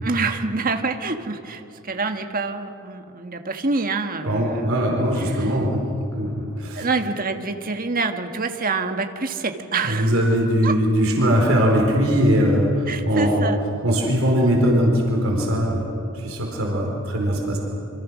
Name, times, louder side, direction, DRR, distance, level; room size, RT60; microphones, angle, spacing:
voice 1, 0.0-5.6 6.7-10.2 10.6-10.8 12.9-13.6, right 3 dB, 40° right, 6 dB, 1.5 m, -27 dB
voice 2, 4.3-5.9 6.1-6.9 9.8-13.5 13.8-15.9 16.1-17.6, equal, 70° right, -1 dB, 4.3 m, -20 dB
27.5 x 25.5 x 6.3 m, 2.7 s
head